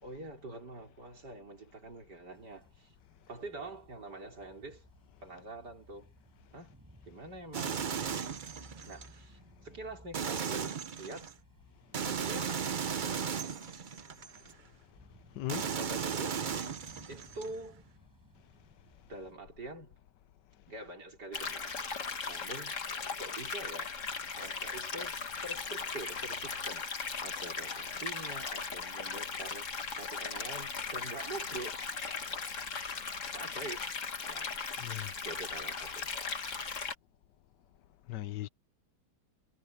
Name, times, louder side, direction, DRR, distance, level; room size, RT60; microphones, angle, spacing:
voice 1, 0.0-2.9 3.3-4.9 5.2-6.1 6.5-6.7 7.1-7.8 8.8-11.3 12.0-12.6 12.9-13.8 15.8-16.5 17.1-17.8 19.1-20.0 20.7-21.8 22.2-22.8 23.2-24.0 24.4-31.8 33.3-33.8 34.3-34.7 35.1-36.2, right 2 dB, 70° right, 5.2 m, -45 dB
sound 1, 2.3-19.4, equal, 10° right, 7.2 m, -60 dB
sound 2, 7.5-9.1 10.1-11.3 11.9-14.5 15.5-17.5, right 7 dB, 50° right, 0.5 m, -36 dB
sound 3, 21.3-36.9, left 5 dB, 45° left, 1.9 m, -38 dB
voice 2, 34.8-35.1 38.1-38.5, left 16 dB, 80° left, 1.3 m, -38 dB
omnidirectional pair, 1.9 m